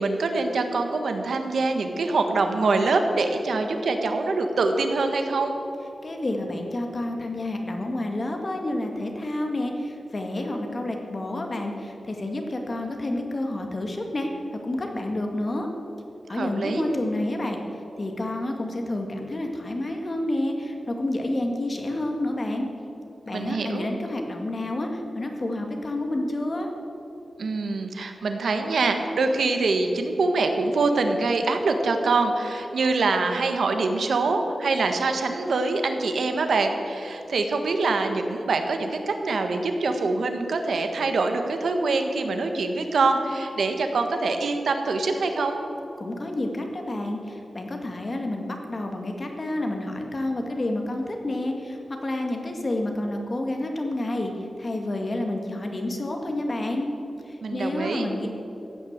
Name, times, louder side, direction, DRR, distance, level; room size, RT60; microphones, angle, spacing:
voice 1, 0.0-5.5 16.3-16.9 23.3-23.9 27.4-45.6 57.4-58.1, right 3 dB, 85° right, 5 dB, 1.4 m, -24 dB
voice 2, 6.0-14.3 14.6-15.7 16.3-17.6 18.0-22.7 23.3-26.7 46.0-56.9 57.3-58.3, left 1 dB, 35° left, 3 dB, 1.8 m, -29 dB
15.5 x 9.0 x 8.1 m, 3.0 s
wide cardioid pair, 135°, 0 cm